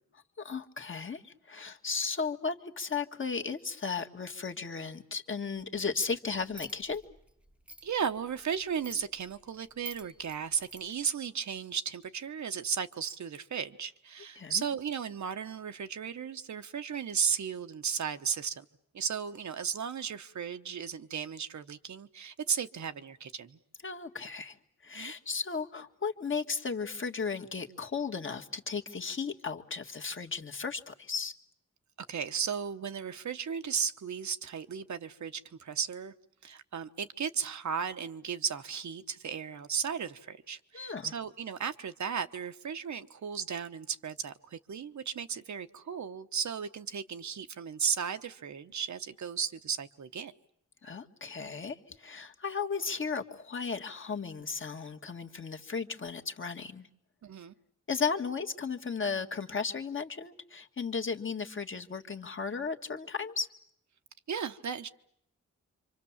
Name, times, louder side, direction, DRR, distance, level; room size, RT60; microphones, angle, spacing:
voice 1, 0.1-7.0 14.4-14.7 23.8-24.6 24.8-31.3 40.7-41.1 50.8-56.9 57.9-63.5, left 5 dB, 40° left, 1.7 m, -35 dB
sound 1, 6.5-11.1, equal, 5° right, 1.0 m, -51 dB
voice 2, 7.8-18.6 18.9-23.6 24.9-25.1 32.1-36.1 36.4-50.3 57.2-57.5 64.3-64.9, right 7 dB, 70° right, 1.1 m, -35 dB
27.5 x 25.5 x 7.3 m
wide cardioid pair, 125°, 30 cm